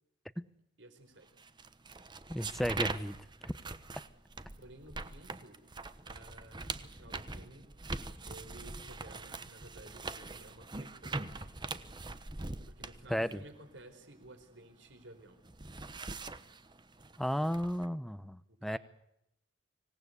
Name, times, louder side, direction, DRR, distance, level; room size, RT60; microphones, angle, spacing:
voice 1, 0.8-1.3 2.1-2.2 4.6-5.6 6.0-7.7 8.3-11.2 12.7-15.4 18.5-18.8, right 1 dB, 70° right, 7 dB, 4.7 m, -54 dB
sound 1, 1.4-14.9 15.2-17.9, right 3 dB, 25° right, 1.1 m, -43 dB
voice 2, 2.3-3.2 3.4-3.5 13.1-13.4 17.2-18.8, equal, ahead, 13 dB, 0.8 m, -34 dB
25.5 x 18.5 x 8.2 m, 0.80 s
head